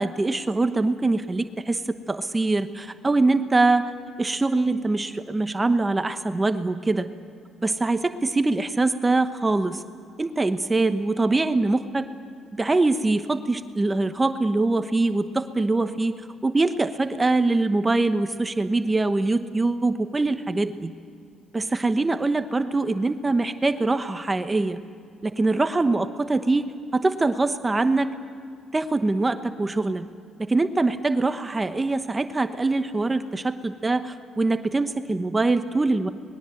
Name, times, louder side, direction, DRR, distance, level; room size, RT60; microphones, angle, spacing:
voice 1, 0.0-1.8 2.1-3.9 4.2-7.1 7.6-9.8 10.2-12.1 12.5-20.9 21.5-24.8 25.2-28.1 28.7-30.1 30.4-36.1, right 2 dB, 20° right, 9 dB, 1.0 m, -23 dB
26.0 x 20.5 x 7.9 m, 2.3 s
cardioid pair, 90°, 0 cm